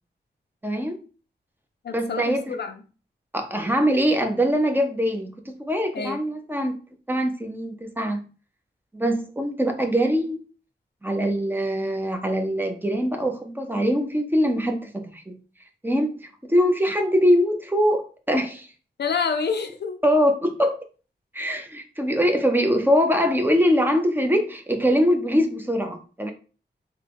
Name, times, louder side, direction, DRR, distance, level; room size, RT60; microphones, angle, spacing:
voice 1, 0.6-1.0 1.9-2.5 3.3-6.8 7.1-8.2 8.9-10.4 11.0-15.4 15.8-18.7 20.0-20.9 21.3-26.3, equal, 10° right, 0.6 m, -23 dB
voice 2, 1.8-2.8 5.9-6.2 19.0-20.0, left 5 dB, 65° left, 0.5 m, -27 dB
3.6 x 2.2 x 3.4 m
wide cardioid pair, 85°, 18 cm